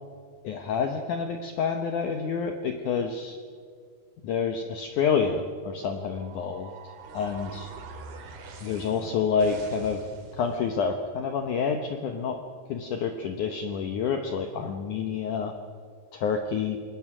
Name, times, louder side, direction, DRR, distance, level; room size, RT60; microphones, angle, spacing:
voice 1, 0.4-3.4 4.2-6.7 7.1-7.7 8.6-10.0 10.3-12.4 12.7-15.5 16.1-16.8, left 6 dB, 85° left, 6 dB, 1.7 m, -28 dB
sound 1, 6.1-10.7, right 4 dB, 60° right, 4.1 m, -44 dB
27.5 x 21.0 x 6.1 m, 2.2 s
omnidirectional pair, 5.2 m